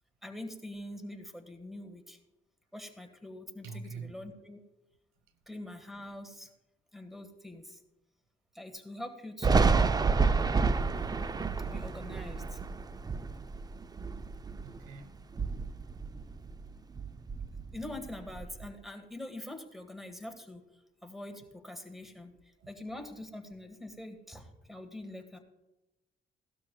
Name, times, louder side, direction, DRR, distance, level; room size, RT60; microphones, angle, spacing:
voice 1, 0.2-2.2 2.7-4.6 5.5-6.5 6.9-7.8 8.5-9.8 11.7-12.6 17.7-20.6 21.0-25.4, left 1 dB, ahead, 6 dB, 1.6 m, -44 dB
voice 2, 3.6-4.3 14.6-15.2 17.1-17.3, right 4 dB, 85° right, 9 dB, 1.2 m, -45 dB
Thunder, 9.4-14.9 15.2-16.7 17.0-18.7, right 4 dB, 20° right, 0.4 m, -29 dB
17.0 x 12.5 x 2.3 m, 1.0 s
cardioid pair, 90°, 20 cm